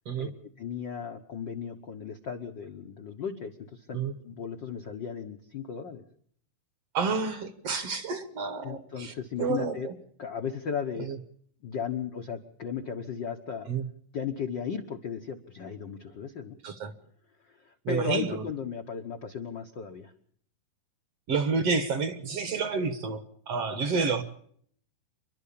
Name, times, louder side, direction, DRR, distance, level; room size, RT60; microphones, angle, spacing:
voice 1, 0.6-6.0 8.6-9.9 10.2-11.1 11.6-13.7 14.1-16.6 17.4-20.1, left 6 dB, 75° left, 5 dB, 1.0 m, -35 dB
voice 2, 6.9-9.1 9.4-9.9 11.0-11.2 13.7-13.8 16.6-16.9 17.9-18.4 21.3-24.2, right 5 dB, 60° right, 10 dB, 1.9 m, -29 dB
28.5 x 12.0 x 8.5 m, 0.63 s
omnidirectional pair, 3.9 m